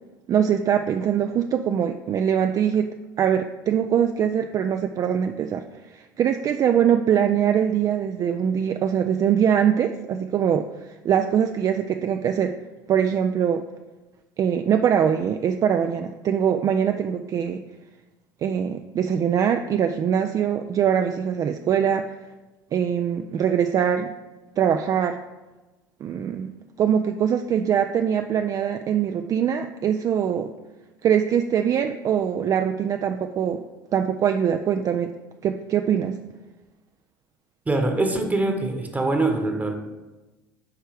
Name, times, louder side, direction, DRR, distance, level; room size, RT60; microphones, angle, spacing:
voice 1, 0.3-5.6 5.9-10.7 11.0-12.5 12.9-13.6 14.4-17.6 18.4-22.1 22.7-24.1 24.6-25.2 26.0-26.5 26.8-30.5 31.0-33.6 33.9-35.1 35.4-36.2, right 8 dB, 35° right, 6 dB, 0.3 m, -22 dB
voice 2, 37.7-39.7, right 2 dB, 15° right, 4 dB, 1.0 m, -23 dB
9.5 x 3.3 x 4.8 m, 1.1 s
figure-of-eight pair, 65°, 10 cm